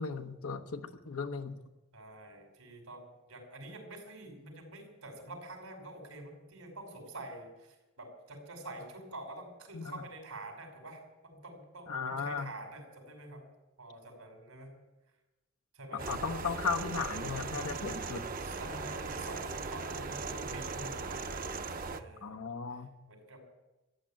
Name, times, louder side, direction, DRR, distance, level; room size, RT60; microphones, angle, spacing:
voice 1, 0.0-1.6 9.7-10.0 11.9-12.5 15.9-18.2 22.2-22.9, left 5 dB, 85° left, 6 dB, 1.0 m, -36 dB
voice 2, 1.9-13.4 13.8-14.7 15.7-16.0 18.4-21.4 21.9-22.4 23.1-23.4, right 2 dB, 90° right, 3 dB, 5.4 m, -47 dB
sound 1, 16.0-22.0, right 4 dB, 40° right, 0.7 m, -38 dB
14.5 x 10.5 x 8.8 m, 1.0 s
head